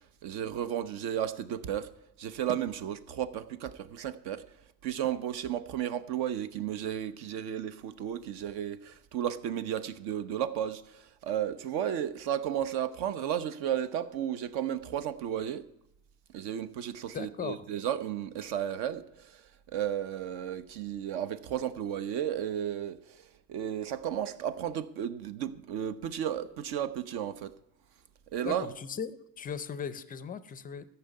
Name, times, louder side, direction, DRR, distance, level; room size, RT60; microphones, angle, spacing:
voice 1, 0.2-1.9 2.2-4.4 4.8-15.7 16.3-19.4 19.7-23.2 23.5-27.5 28.3-28.7, right 10 dB, 55° right, 1.0 m, -33 dB
voice 2, 17.1-17.6 28.4-30.9, left 7 dB, 20° left, 0.5 m, -38 dB
14.0 x 5.8 x 9.6 m
supercardioid pair, 130°, 46 cm